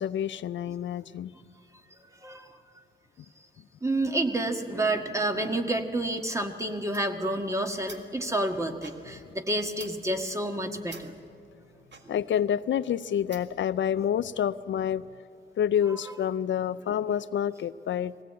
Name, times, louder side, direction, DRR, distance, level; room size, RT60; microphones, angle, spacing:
voice 1, 0.0-1.3 12.1-15.0 15.6-18.1, left 9 dB, 70° left, 15 dB, 0.4 m, -28 dB
voice 2, 2.2-2.6 3.8-11.1 12.0-12.1, right 1 dB, 15° right, 5 dB, 1.6 m, -29 dB
sound 1, 6.9-13.7, right 4 dB, 65° right, 1.7 m, -51 dB
20.5 x 17.0 x 8.5 m, 2.4 s
cardioid pair, 85°, 20 cm